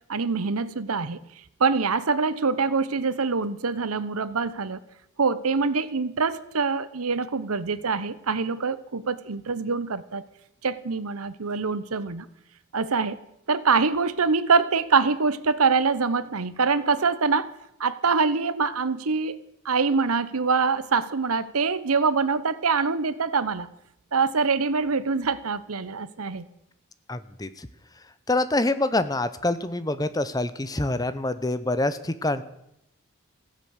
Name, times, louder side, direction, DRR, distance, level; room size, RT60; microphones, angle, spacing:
voice 1, 0.1-1.2 1.6-4.8 5.2-10.2 10.6-12.3 12.7-13.2 13.5-17.5 17.8-19.4 19.6-23.7 24.1-26.5, right 4 dB, 90° right, 16 dB, 0.9 m, -24 dB
voice 2, 27.1-27.7 28.3-32.4, left 2 dB, 15° left, 13 dB, 0.7 m, -26 dB
15.0 x 11.0 x 8.2 m, 0.82 s
head